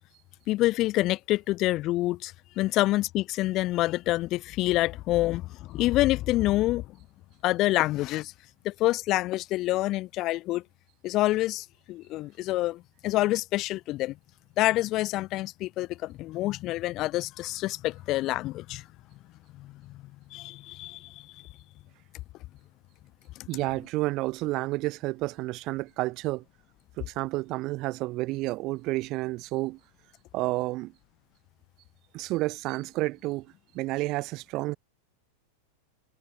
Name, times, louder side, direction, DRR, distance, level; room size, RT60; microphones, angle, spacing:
voice 1, 0.5-6.8 7.4-8.3 8.6-10.6 11.0-14.1 14.6-18.8 19.6-19.7 20.3-21.1, left 17 dB, 35° left, 0.4 m, -27 dB
voice 2, 23.5-26.4 27.0-29.8 30.3-30.9 32.1-33.5 33.7-34.8, right 20 dB, 40° right, 1.0 m, -30 dB
figure-of-eight pair, 90°, 0 cm